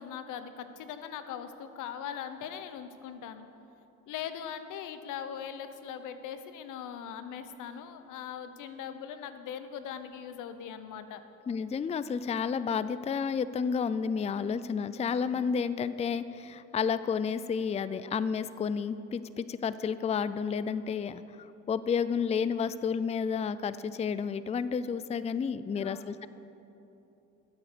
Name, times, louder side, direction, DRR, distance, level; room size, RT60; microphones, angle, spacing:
voice 1, 0.0-3.5 4.1-11.2 14.1-14.6 14.8-15.0 25.7-26.2, left 8 dB, 85° left, 10 dB, 0.9 m, -41 dB
voice 2, 11.5-26.3, left 6 dB, 20° left, 15 dB, 0.4 m, -31 dB
13.0 x 8.4 x 6.7 m, 3.0 s
cardioid pair, 90°, 30 cm